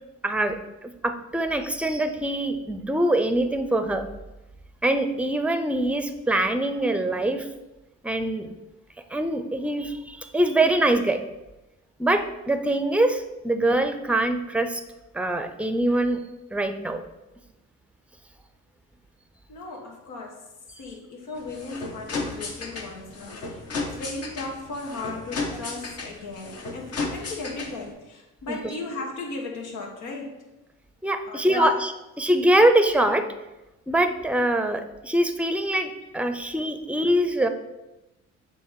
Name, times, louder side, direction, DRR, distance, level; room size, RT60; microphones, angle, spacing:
voice 1, 0.2-0.6 0.8-4.1 4.8-7.5 8.0-8.5 9.1-11.2 12.0-14.8 15.1-16.2 16.5-17.0 28.5-28.6 31.0-33.3 33.9-37.5, right 1 dB, 5° right, 8 dB, 0.6 m, -23 dB
voice 2, 19.5-20.4 20.8-30.3 31.2-31.7, left 3 dB, 80° left, 1 dB, 1.5 m, -36 dB
sound 1, 21.3-27.9, left 3 dB, 55° left, 1.2 m, -34 dB
7.6 x 3.0 x 5.8 m, 0.99 s
cardioid pair, 90°, 30 cm